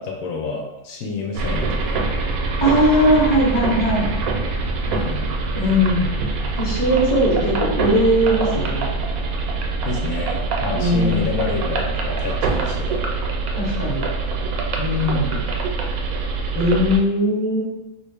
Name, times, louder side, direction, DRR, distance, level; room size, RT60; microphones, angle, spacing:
voice 1, 0.0-2.0 4.8-5.3 9.8-13.0 15.0-15.4, left 3 dB, 80° left, 0 dB, 1.0 m, -29 dB
sound 1, 1.3-17.0, right 3 dB, 80° right, 1.0 m, -24 dB
voice 2, 2.6-4.1 5.6-6.1 6.6-8.9 10.7-11.3 13.5-14.1 14.8-15.4 16.5-17.6, equal, 20° left, -5 dB, 0.8 m, -19 dB
3.2 x 2.5 x 3.4 m, 1.0 s
omnidirectional pair, 1.5 m